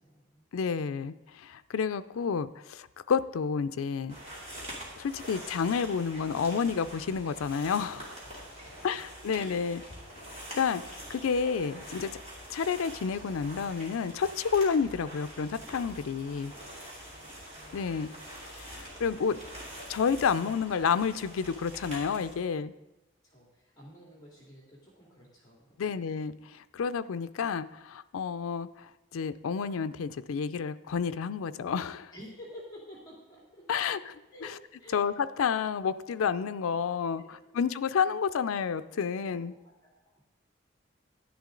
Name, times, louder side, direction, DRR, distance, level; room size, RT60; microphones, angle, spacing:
voice 1, 0.0-0.5 7.9-8.3 8.6-9.1 15.8-16.0 16.8-17.9 23.2-26.0 32.1-34.5 34.8-35.0 37.2-37.5 39.3-40.2, equal, 20° left, -4 dB, 2.4 m, -52 dB
voice 2, 0.5-4.2 5.0-8.1 8.8-9.8 10.5-12.1 12.5-16.5 17.7-18.1 18.5-19.4 19.9-22.7 25.8-32.1 33.7-34.1 34.9-39.5, left 6 dB, 85° left, 13 dB, 0.4 m, -30 dB
sound 1, 4.1-22.4, equal, 30° right, 2.8 m, -45 dB
11.0 x 10.5 x 3.8 m, 0.97 s
head